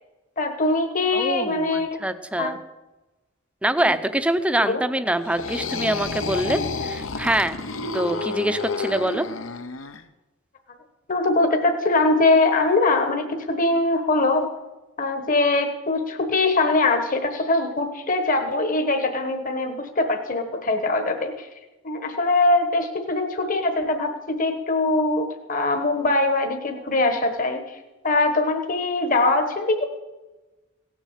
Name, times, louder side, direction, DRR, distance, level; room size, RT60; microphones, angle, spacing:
voice 1, 0.4-2.0 2.4-2.5 3.8-3.9 4.6-4.8 11.1-14.5 15.0-21.5 21.8-27.8 28.0-29.8, left 2 dB, 45° left, 5 dB, 1.2 m, -22 dB
voice 2, 1.1-2.6 3.6-7.6 7.9-9.3, right 1 dB, 5° right, 10 dB, 0.6 m, -24 dB
sound 1, 5.2-10.0, left 4 dB, 80° left, 0.9 m, -30 dB
17.0 x 7.3 x 7.3 m, 1.1 s
head